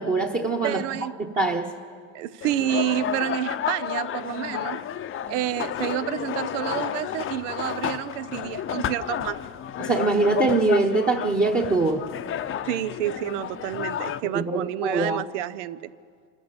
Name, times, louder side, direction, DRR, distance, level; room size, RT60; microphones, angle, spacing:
voice 1, 0.0-0.8 1.3-1.7 9.8-12.1 14.2-15.2, right 3 dB, 25° right, -1 dB, 1.2 m, -23 dB
voice 2, 0.6-1.1 2.1-4.9 5.3-9.4 12.6-15.9, right 12 dB, 85° right, 16 dB, 0.7 m, -29 dB
sound 1, 2.4-14.2, left 9 dB, 35° left, 0.7 m, -31 dB
27.0 x 14.0 x 7.0 m, 2.1 s
supercardioid pair, 110°, 36 cm